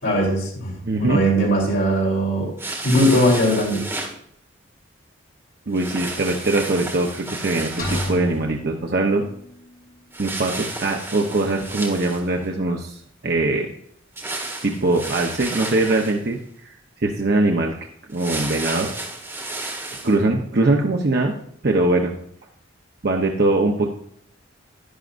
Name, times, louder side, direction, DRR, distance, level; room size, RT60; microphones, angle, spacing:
voice 1, 0.0-0.7 1.0-2.5 2.8-3.8, equal, 65° left, -3 dB, 3.8 m, -19 dB
voice 2, 0.8-1.2 5.7-9.2 10.2-13.7 14.6-16.4 16.6-16.7 17.0-17.8 18.1-18.9 20.0-21.3 21.6-22.1 23.0-23.9, right 2 dB, 50° right, 1 dB, 0.8 m, -21 dB
Clothing Rustle Cotton, 2.6-4.1 5.7-8.3 10.1-12.4 14.2-16.2 18.1-20.1, right 2 dB, 10° right, 1.4 m, -32 dB
sound 1, 7.8-9.7, left 1 dB, 45° left, 2.9 m, -31 dB
11.5 x 10.5 x 2.5 m, 0.68 s
head